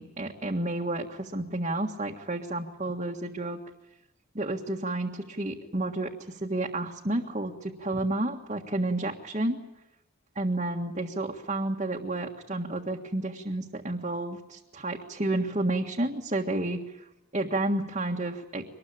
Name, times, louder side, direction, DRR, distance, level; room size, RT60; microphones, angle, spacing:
voice 1, 0.0-3.6 4.3-9.6 10.3-17.1 17.3-18.7, right 2 dB, 35° right, 0 dB, 1.7 m, -31 dB
24.0 x 20.0 x 8.8 m, 0.92 s
head